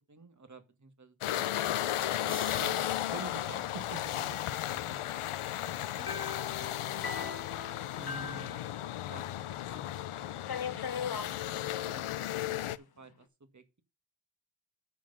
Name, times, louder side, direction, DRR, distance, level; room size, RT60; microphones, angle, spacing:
voice 1, 0.1-2.2 4.7-5.0 5.6-7.4 7.9-12.1 12.4-13.8, right 2 dB, 35° right, 1.7 m, -53 dB
sound 1, 1.2-12.8, left 13 dB, 90° left, 0.6 m, -35 dB
sound 2, 2.3-4.6, left 3 dB, 25° left, 1.1 m, -48 dB
voice 2, 2.6-4.6, right 6 dB, 70° right, 1.1 m, -45 dB
sound 3, 6.1-9.3 9.5-9.6 10.4-11.3 12.3-12.7, left 6 dB, 50° left, 1.0 m, -40 dB
9.1 x 4.4 x 6.7 m
wide cardioid pair, 70°, 48 cm